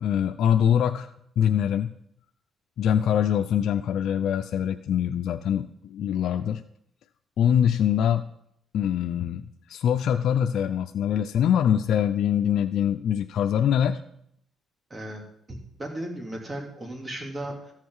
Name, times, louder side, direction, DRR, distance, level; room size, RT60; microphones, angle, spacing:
voice 1, 0.0-1.9 2.8-6.6 7.4-8.3 8.7-14.0, left 9 dB, 75° left, 6 dB, 0.5 m, -24 dB
voice 2, 14.9-15.2 15.5-17.7, right 1 dB, 30° right, 1 dB, 3.0 m, -36 dB
14.0 x 7.4 x 4.8 m, 0.72 s
cardioid pair, 90°, 0 cm